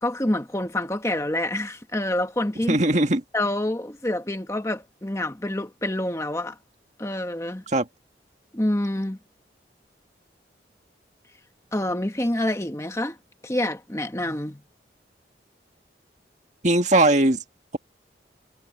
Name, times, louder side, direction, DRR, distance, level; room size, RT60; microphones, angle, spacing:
voice 1, 0.0-2.8 3.3-6.6 7.0-7.6 8.5-9.2 11.7-13.2 13.4-14.6, left 1 dB, 15° left, 1.3 m, -27 dB
voice 2, 2.7-3.2 7.7-7.9 16.6-17.4, right 2 dB, 40° right, 1.9 m, -19 dB
head